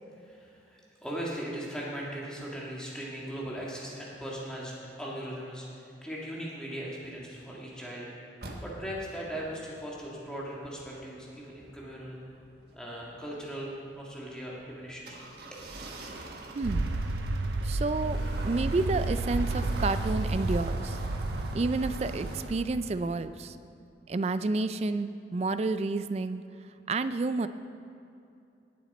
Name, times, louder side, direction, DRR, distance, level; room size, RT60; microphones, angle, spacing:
voice 1, 0.1-8.3 8.6-12.2 12.7-15.2 15.5-15.6, equal, 5° left, -5 dB, 1.8 m, -39 dB
sound 1, 8.4-22.5, right 2 dB, 60° right, 1.3 m, -44 dB
voice 2, 16.5-16.9 17.6-21.0 21.5-23.6 24.1-26.4 26.9-27.5, right 3 dB, 35° right, 12 dB, 0.3 m, -30 dB
sound 2, 16.6-23.1, right 2 dB, 85° right, 0.6 m, -31 dB
19.0 x 7.3 x 4.1 m, 2.6 s
head